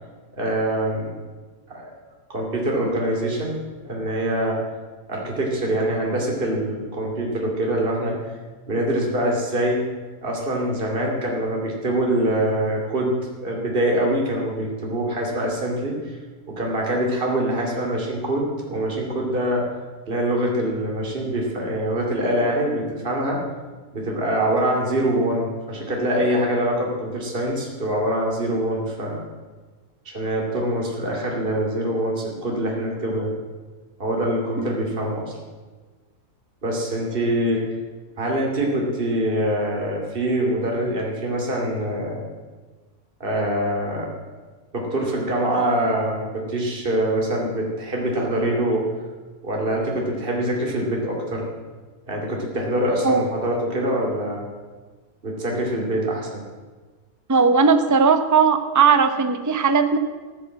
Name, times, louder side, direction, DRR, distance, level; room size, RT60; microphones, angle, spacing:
voice 1, 0.3-1.1 1.7-1.9 2.3-3.6 3.8-4.6 5.1-8.2 8.7-9.9 10.2-13.1 13.4-16.2 16.5-19.6 20.1-23.4 23.9-29.2 30.0-33.3 34.0-35.3 36.6-37.6 38.2-42.2 43.2-44.1 44.7-48.9 49.4-51.5 52.1-54.5 55.2-56.4, right 1 dB, 35° right, -1 dB, 2.9 m, -24 dB
voice 2, 57.3-60.0, right 5 dB, 15° right, 8 dB, 0.7 m, -18 dB
14.5 x 12.0 x 7.7 m, 1.3 s
omnidirectional pair, 1.7 m